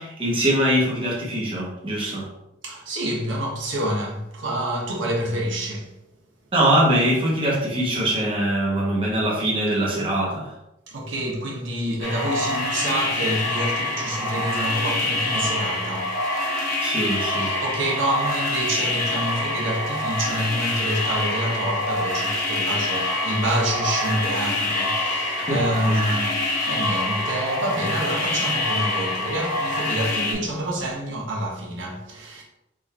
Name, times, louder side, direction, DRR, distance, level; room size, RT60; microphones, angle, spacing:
voice 1, 0.0-2.3 6.5-10.5 16.8-17.5 25.4-26.0, right 1 dB, 30° right, 1.0 m, -23 dB
voice 2, 2.6-5.9 10.9-16.2 17.3-32.4, right 1 dB, 85° right, 1.1 m, -27 dB
sound 1, 12.0-30.3, left 2 dB, 40° left, 1.2 m, -26 dB
3.8 x 2.6 x 4.2 m
head